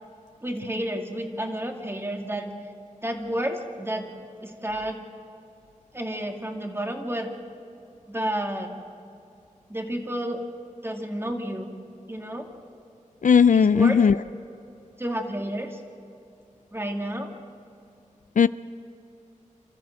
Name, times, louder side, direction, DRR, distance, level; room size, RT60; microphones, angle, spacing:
voice 1, 0.4-2.5 3.0-4.1 4.4-5.0 5.9-7.3 8.1-8.7 9.7-10.4 10.8-11.7 12.1-12.5 13.5-14.0 15.0-15.8 16.7-17.3, right 1 dB, 20° right, 3 dB, 2.4 m, -30 dB
voice 2, 13.2-14.1 18.4-18.5, left 6 dB, 75° left, 16 dB, 0.4 m, -16 dB
27.5 x 14.0 x 7.7 m, 2.7 s
wide cardioid pair, 65°, 13 cm